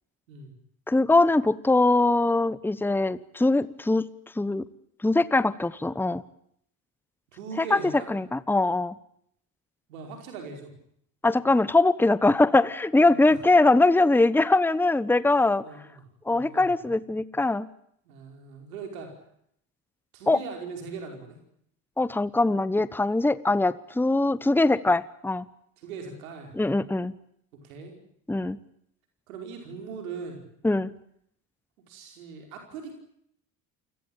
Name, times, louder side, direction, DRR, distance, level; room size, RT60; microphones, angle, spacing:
voice 1, 0.9-4.0 4.4-4.6 5.0-6.2 7.6-7.8 8.1-8.9 11.2-15.6 16.3-17.7 20.3-20.4 22.0-25.4 26.6-27.1 28.3-28.6 30.6-30.9, left 2 dB, 5° left, 18 dB, 1.0 m, -22 dB
voice 2, 7.3-8.1 9.9-10.7 13.1-13.4 15.6-16.0 16.3-16.7 18.0-19.1 20.1-21.4 25.8-26.5 27.6-27.9 29.3-30.4 31.9-32.9, right 5 dB, 85° right, 3 dB, 5.1 m, -40 dB
28.5 x 17.5 x 8.9 m, 0.70 s
hypercardioid pair, 65°, 41 cm